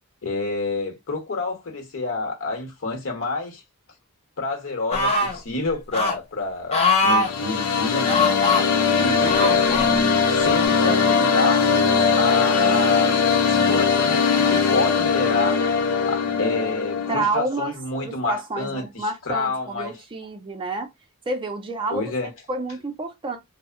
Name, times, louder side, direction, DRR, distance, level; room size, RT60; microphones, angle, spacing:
voice 1, 0.2-3.6 4.4-8.6 9.0-11.7 12.1-15.6 16.1-20.0 21.9-22.3, left 3 dB, 65° left, 0.9 m, -29 dB
sound 1, 4.9-5.4 5.9-6.2 6.7-7.3 8.1-8.6 9.2-9.9 10.6-10.7, left 3 dB, 30° left, 0.6 m, -21 dB
sound 2, 7.0-17.2, left 5 dB, 85° left, 0.5 m, -20 dB
voice 2, 17.1-17.7 18.0-20.9 21.3-22.1 22.5-23.4, right 2 dB, 25° right, 0.4 m, -29 dB
2.6 x 2.0 x 2.4 m
head